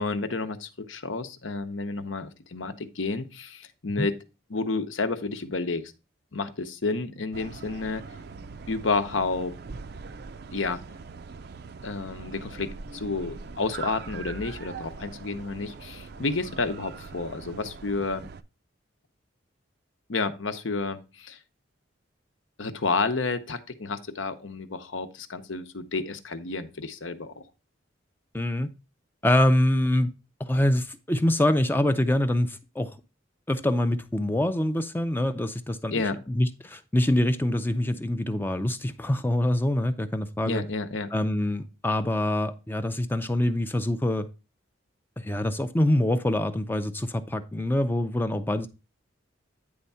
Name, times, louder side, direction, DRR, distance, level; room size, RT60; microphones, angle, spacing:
voice 1, 0.0-4.1 4.5-5.9 6.3-8.1 8.7-9.5 10.5-10.8 11.8-18.3 20.1-21.4 22.6-27.4 35.9-36.2 40.4-41.1, left 3 dB, 70° left, 0.8 m, -30 dB
sound 1, 7.3-18.4, right 4 dB, 50° right, 0.4 m, -42 dB
voice 2, 28.3-28.7 29.2-30.1 30.4-32.9 33.5-40.6 41.1-44.3 45.2-48.7, left 1 dB, 10° left, 0.5 m, -25 dB
9.6 x 3.5 x 5.5 m
head